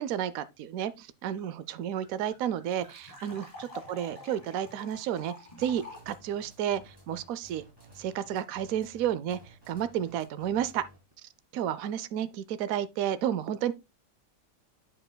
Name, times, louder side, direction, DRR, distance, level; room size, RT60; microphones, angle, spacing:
voice 1, 0.0-7.6 8.0-9.4 9.7-10.8 11.5-13.7, right 10 dB, 75° right, 1.0 m, -31 dB
sound 1, 1.4-1.5 1.7-1.8 2.0-6.1, left 2 dB, 25° left, 3.3 m, -47 dB
sound 2, 5.6-11.1, right 1 dB, 15° right, 3.3 m, -55 dB
8.9 x 7.7 x 2.2 m
omnidirectional pair, 1.5 m